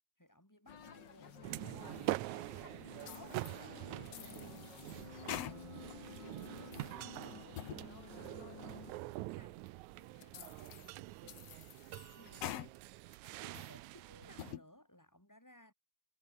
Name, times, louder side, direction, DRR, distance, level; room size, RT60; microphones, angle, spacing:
voice 1, 0.2-2.0 2.4-2.7 3.5-9.6 9.9-12.8 13.4-15.7, left 1 dB, 5° left, 4.9 m, -63 dB
sound 1, 0.7-9.0, left 7 dB, 40° left, 2.2 m, -53 dB
sound 2, 1.4-14.5, right 18 dB, 80° right, 2.0 m, -45 dB
sound 3, 3.0-3.6 4.1-5.9 6.3-7.0 7.4-7.8 8.2-8.3 8.9-9.0 9.7-9.8 10.2-10.9 11.3-12.7 13.1-13.8 14.2-14.6, left 11 dB, 60° left, 2.2 m, -47 dB
omnidirectional pair, 3.4 m